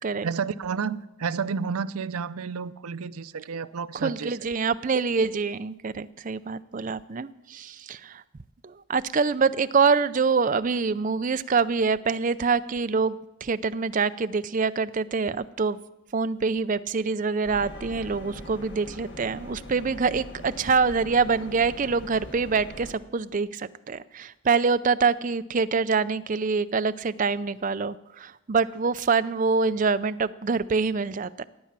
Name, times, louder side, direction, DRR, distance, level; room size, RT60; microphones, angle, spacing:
voice 1, 0.2-4.4, right 5 dB, 85° right, 0.5 m, -31 dB
voice 2, 3.9-8.2 8.6-15.8 16.1-31.4, right 5 dB, 35° right, 0.4 m, -25 dB
sound 1, 17.4-22.9, equal, 55° left, 1.6 m, -42 dB
16.0 x 9.5 x 7.4 m
head